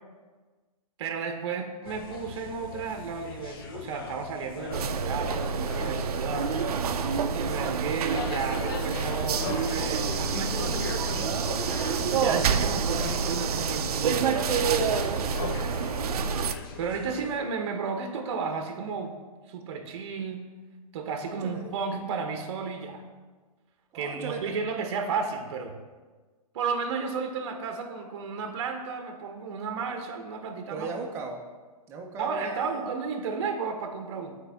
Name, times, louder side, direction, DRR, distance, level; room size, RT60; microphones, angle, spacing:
voice 1, 1.0-6.6 7.3-11.5 12.2-15.3 16.8-19.2 19.5-20.5 20.9-23.0 23.9-25.8 26.5-30.9 32.2-34.4, right 5 dB, 45° right, 5 dB, 0.8 m, -33 dB
sound 1, 1.8-17.4, left 6 dB, 35° left, 0.5 m, -40 dB
sound 2, 4.7-16.6, right 6 dB, 70° right, 0.5 m, -28 dB
voice 2, 21.3-21.8 23.9-24.5 30.7-31.4 31.9-32.9, right 4 dB, 15° right, 2 dB, 0.6 m, -37 dB
8.6 x 4.5 x 3.4 m, 1.4 s
hypercardioid pair, 155°, 20 cm